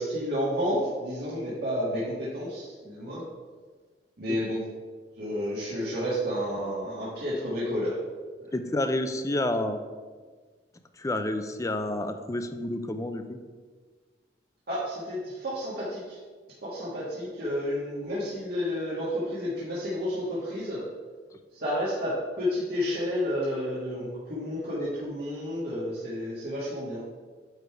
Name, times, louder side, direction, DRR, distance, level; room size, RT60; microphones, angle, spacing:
voice 1, 0.0-3.2 4.2-4.6 5.2-7.9 8.4-8.5 14.7-16.2 16.6-20.8 21.5-22.1 22.4-27.0, equal, 60° right, -8 dB, 1.6 m, -31 dB
voice 2, 8.5-9.8 11.0-13.4, left 1 dB, 20° left, 8 dB, 0.5 m, -29 dB
9.0 x 3.4 x 4.7 m, 1.4 s
head